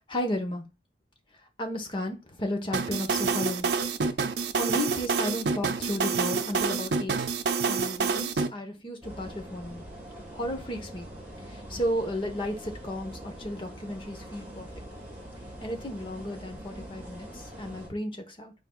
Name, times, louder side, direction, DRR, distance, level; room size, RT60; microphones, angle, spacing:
voice 1, 0.1-0.7 1.6-3.7 4.6-7.2 7.7-9.9 10.3-11.1 11.5-14.7 15.6-18.5, left 1 dB, 30° left, 4 dB, 1.2 m, -33 dB
sound 1, 2.7-8.5, right 5 dB, 70° right, 0.6 m, -27 dB
sound 2, 9.0-17.9, equal, 10° right, 2.4 m, -43 dB
9.5 x 4.5 x 2.4 m, 0.28 s
head